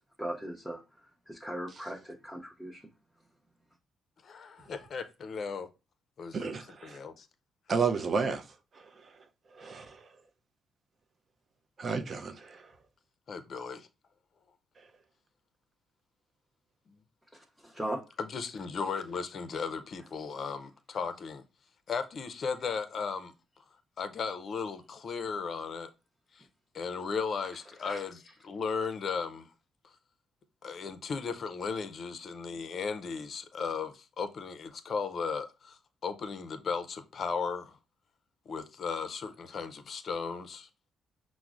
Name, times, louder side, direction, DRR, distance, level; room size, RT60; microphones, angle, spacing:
voice 1, 0.2-0.8 1.3-2.8 17.3-18.0 27.8-28.0, right 1 dB, ahead, 0.6 m, -38 dB
voice 2, 4.2-5.7 6.2-7.3 13.3-13.9 18.2-21.4 21.9-23.3 24.0-25.9 26.3-26.4 26.7-29.5 29.8-29.9 30.6-37.8 38.5-40.7, left 5 dB, 50° left, 0.5 m, -36 dB
voice 3, 6.3-7.0 7.7-8.4 9.6-10.0 11.8-12.6, right 5 dB, 45° right, 0.5 m, -31 dB
5.7 x 2.0 x 2.4 m
cardioid pair, 90°, 0 cm